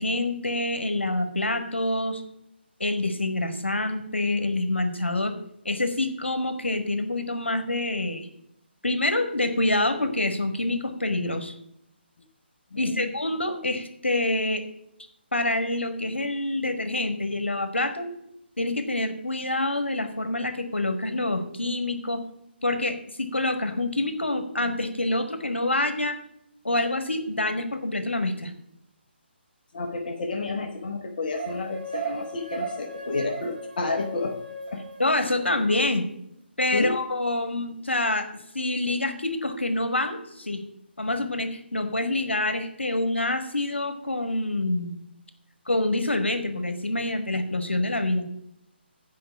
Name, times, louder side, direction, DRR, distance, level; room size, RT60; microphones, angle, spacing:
voice 1, 0.0-2.2 2.8-5.3 5.6-8.3 8.8-11.5 12.8-14.6 15.3-18.1 18.6-22.2 22.6-26.2 26.6-28.5 35.0-36.0 36.6-38.3 38.5-40.6 41.0-45.0 45.7-48.2, left 2 dB, 80° left, 7 dB, 1.5 m, -26 dB
voice 2, 12.7-13.1 29.7-34.4 34.7-34.8 36.7-36.9, left 3 dB, 50° left, 2 dB, 1.2 m, -30 dB
sound 1, 31.3-35.8, right 3 dB, 50° right, 3.0 m, -36 dB
9.1 x 5.1 x 6.9 m, 0.77 s
figure-of-eight pair, 145°, 6 cm